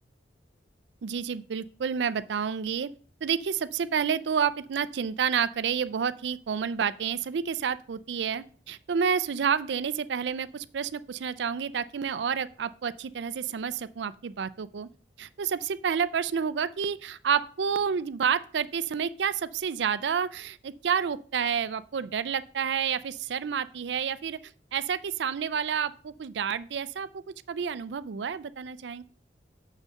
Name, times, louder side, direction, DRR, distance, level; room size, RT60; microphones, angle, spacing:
voice 1, 1.0-2.9 3.2-14.9 15.2-27.2 27.5-29.0, right 7 dB, 80° right, 17 dB, 0.4 m, -29 dB
6.6 x 6.4 x 6.3 m, 0.43 s
head